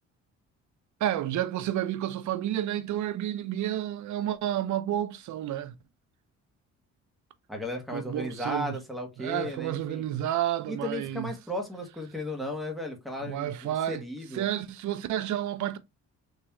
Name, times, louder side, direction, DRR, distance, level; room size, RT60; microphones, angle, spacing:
voice 1, 1.0-5.7 7.9-8.8 9.2-11.3 13.2-14.0 14.3-15.8, right 12 dB, 70° right, 0.6 m, -30 dB
voice 2, 7.5-10.0 10.7-14.5, left 1 dB, ahead, 1.4 m, -35 dB
3.7 x 2.9 x 2.9 m
cardioid pair, 90°, 30 cm